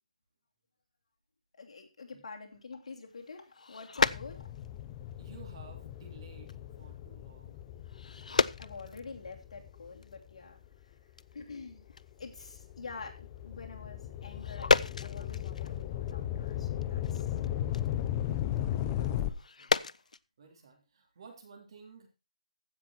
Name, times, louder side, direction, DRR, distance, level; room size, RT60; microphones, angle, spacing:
voice 1, 1.6-4.5 8.6-10.6 11.3-11.8 12.2-17.3, left 4 dB, 60° left, 2 dB, 2.9 m, -47 dB
sound 1, 3.1-4.8 5.1-5.5 6.0-6.2 6.5-6.6 6.8-7.0 7.8-9.4 9.7-9.8 10.0-10.4 10.8-10.9 11.2-11.6 11.8-12.1 12.4-12.5 14.2-16.1 16.4-20.2, left 4 dB, 85° left, 0.5 m, -33 dB
sound 2, 4.0-10.7 11.3-19.3, left 11 dB, 20° left, 0.7 m, -37 dB
voice 2, 5.2-7.6 17.8-17.9 18.3-18.4 19.3-22.1, right 5 dB, 45° right, 3 dB, 3.4 m, -55 dB
15.5 x 6.1 x 4.3 m, 0.29 s
hypercardioid pair, 165°, 4 cm